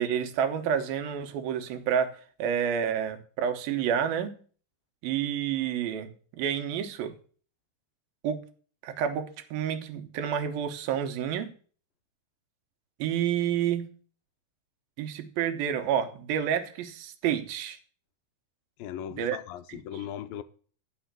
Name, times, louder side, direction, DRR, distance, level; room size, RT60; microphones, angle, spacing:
voice 1, 0.0-4.3 5.0-7.1 8.2-8.4 8.8-11.5 13.0-13.8 15.0-17.8 19.1-19.4 19.7-19.8, right 8 dB, 90° right, 2.9 m, -29 dB
voice 2, 18.8-20.4, left 10 dB, 85° left, 2.5 m, -38 dB
10.5 x 6.3 x 7.4 m
omnidirectional pair, 4.1 m